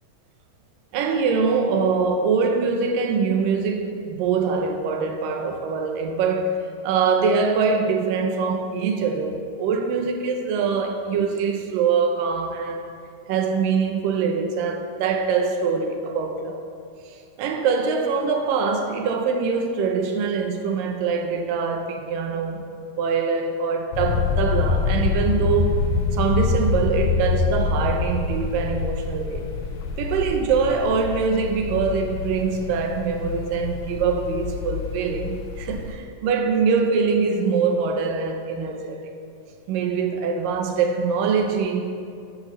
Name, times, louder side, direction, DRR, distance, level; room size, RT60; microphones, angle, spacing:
voice 1, 0.9-12.9 13.3-16.6 17.1-22.7 23.0-29.4 30.0-39.0 39.7-41.9, right 5 dB, 80° right, 2.5 m, -23 dB
sound 1, 23.9-35.9, left 4 dB, 75° left, 1.5 m, -26 dB
14.0 x 10.5 x 3.2 m
omnidirectional pair, 3.9 m